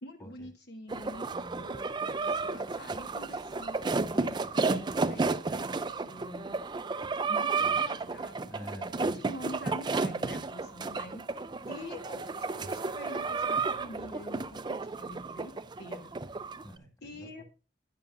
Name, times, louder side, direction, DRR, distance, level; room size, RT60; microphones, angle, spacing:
voice 1, 0.0-6.6 7.3-8.5 9.0-11.2 11.7-16.1 17.0-17.4, left 1 dB, 60° left, 5 dB, 1.0 m, -46 dB
sound 1, 0.9-16.7, right 4 dB, 25° right, 0.4 m, -32 dB
voice 2, 1.3-1.7 7.6-7.9 8.4-9.2 16.6-17.4, equal, 20° left, 3 dB, 2.1 m, -47 dB
12.5 x 9.3 x 2.5 m, 0.32 s
head